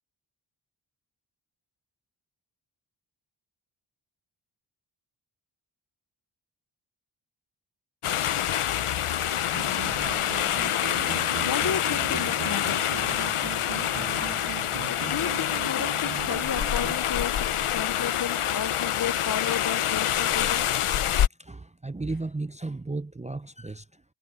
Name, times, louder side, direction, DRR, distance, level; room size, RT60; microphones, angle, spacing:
sound 1, 8.0-21.3, left 11 dB, 85° left, 0.7 m, -26 dB
sound 2, 9.5-17.0, right 8 dB, 50° right, 0.7 m, -39 dB
voice 1, 11.4-12.8 14.8-20.7, left 8 dB, 45° left, 0.5 m, -33 dB
voice 2, 21.4-24.0, right 3 dB, 15° right, 0.4 m, -34 dB
wide cardioid pair, 100°, 49 cm